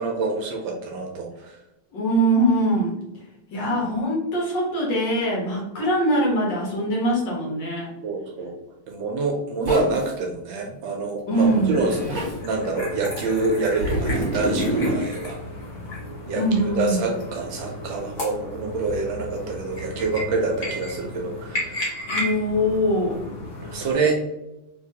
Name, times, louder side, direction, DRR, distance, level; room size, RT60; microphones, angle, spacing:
voice 1, 0.0-1.6 8.0-8.5 8.9-15.4 16.3-21.9 23.6-24.2, right 3 dB, 75° right, 1 dB, 1.3 m, -27 dB
voice 2, 1.9-3.0 3.5-7.9 11.3-11.8 16.4-17.0 22.1-23.2, right 1 dB, 65° left, -2 dB, 1.8 m, -22 dB
Zipper (clothing), 9.7-10.1 11.3-12.4 13.8-15.0, right 1 dB, 35° right, 1.6 m, -26 dB
sound 1, 11.4-23.9, left 1 dB, 45° left, 1.1 m, -34 dB
3.7 x 2.9 x 2.7 m, 0.92 s
omnidirectional pair, 2.2 m